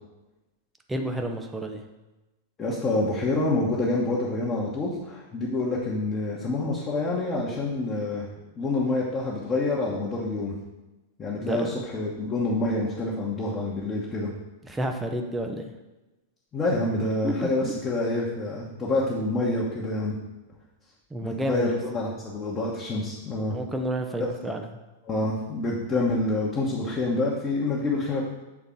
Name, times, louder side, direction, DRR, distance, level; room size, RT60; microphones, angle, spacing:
voice 1, 0.9-1.8 11.4-11.7 14.7-15.7 17.2-17.7 21.1-21.7 23.5-24.7, right 1 dB, 10° right, 4 dB, 0.6 m, -30 dB
voice 2, 2.6-8.3 8.6-10.6 11.2-14.3 16.5-20.2 21.2-23.6 25.0-28.3, left 2 dB, 20° left, -6 dB, 1.1 m, -27 dB
7.1 x 3.9 x 3.7 m, 1.1 s
figure-of-eight pair, 95°, 0 cm